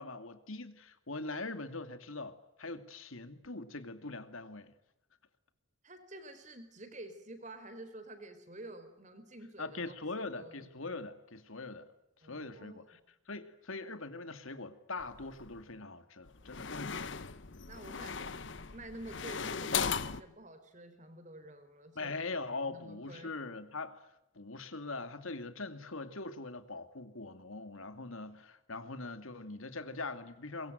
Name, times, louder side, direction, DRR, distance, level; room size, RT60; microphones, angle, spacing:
voice 1, 0.0-4.7 9.6-11.9 12.2-13.0 13.3-17.1 22.0-24.0 24.3-30.7, left 3 dB, 80° left, 2.4 m, -42 dB
voice 2, 5.8-10.7 12.2-12.8 17.7-18.4 18.7-22.2 22.6-23.3, right 1 dB, 35° right, 4.4 m, -49 dB
sound 1, 15.0-15.6 16.3-20.2, left 6 dB, 60° left, 1.0 m, -38 dB
24.0 x 22.5 x 9.2 m
head